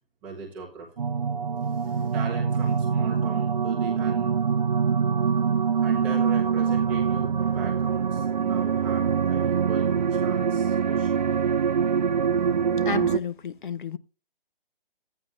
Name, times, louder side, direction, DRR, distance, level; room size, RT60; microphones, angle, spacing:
voice 1, 0.2-0.9 1.6-4.4 5.8-11.3, right 5 dB, 5° right, 0.7 m, -39 dB
sound 1, 1.0-13.2, right 6 dB, 50° right, 0.5 m, -24 dB
sound 2, 6.4-10.3, right 8 dB, 90° right, 0.7 m, -44 dB
voice 2, 12.9-14.0, left 7 dB, 60° left, 0.5 m, -31 dB
13.0 x 9.0 x 2.4 m
hypercardioid pair, 165°, 29 cm